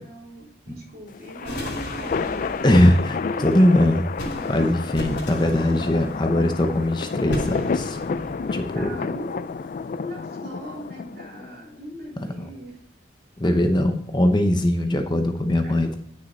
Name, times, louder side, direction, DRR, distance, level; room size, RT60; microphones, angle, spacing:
voice 1, 0.0-2.9 3.4-3.8 8.7-9.5 10.0-12.8 15.6-15.7, right 1 dB, 55° right, -4 dB, 3.8 m, -40 dB
sound 1, 1.1-11.5, left 5 dB, 45° left, 0.3 m, -30 dB
sound 2, 1.4-9.7, equal, 65° left, 3.2 m, -35 dB
voice 2, 2.6-3.2 3.4-4.0 4.5-8.0 8.5-8.8 12.2-12.5 13.4-16.0, left 1 dB, 25° left, 6 dB, 0.8 m, -20 dB
9.8 x 6.5 x 4.1 m, 0.66 s
head